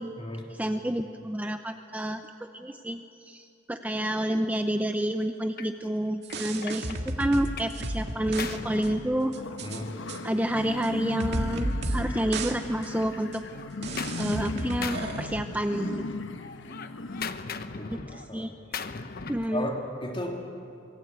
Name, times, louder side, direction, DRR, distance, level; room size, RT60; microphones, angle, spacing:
voice 1, 0.5-9.3 10.2-13.4 14.2-16.1 17.9-18.5 19.3-19.7, right 1 dB, 10° right, 6 dB, 0.7 m, -29 dB
Gunshot gunfire, 5.6-5.8 6.3-7.8 8.1-9.8 10.7-12.6 12.9-14.5 14.8-16.0 16.3-19.5, left 5 dB, 55° left, 1.0 m, -40 dB
sound 1, 6.2-8.6 8.8-8.9 9.3-9.8 10.1-10.2 10.8-10.9 11.2-12.1 12.3-12.5 12.8-12.9 13.3-13.4 13.8-15.2, right 1 dB, 60° right, 2.2 m, -33 dB
sound 2, 7.7-17.3, left 2 dB, 85° left, 1.1 m, -37 dB
voice 2, 9.6-9.9 17.7-18.5 19.4-20.4, left 1 dB, 30° left, 1 dB, 3.4 m, -35 dB
26.5 x 22.5 x 8.2 m, 2.6 s
head